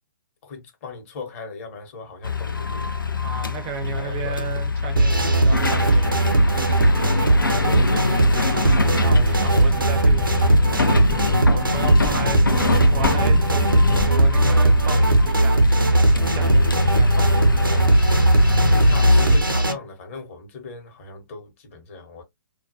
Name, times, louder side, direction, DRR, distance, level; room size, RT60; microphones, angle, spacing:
voice 1, 0.4-3.0 3.8-4.4 7.2-8.4 18.6-22.2, left 4 dB, 40° left, 0.9 m, -38 dB
sound 1, 2.2-19.4, left 3 dB, 85° left, 0.5 m, -24 dB
voice 2, 3.2-6.3 9.0-11.2 11.5-17.9, right 6 dB, 35° right, 0.5 m, -35 dB
sound 2, 5.0-19.7, right 2 dB, 85° right, 0.6 m, -18 dB
sound 3, 8.5-14.7, left 5 dB, 20° left, 0.4 m, -32 dB
2.3 x 2.2 x 2.6 m
figure-of-eight pair, 120°, 11 cm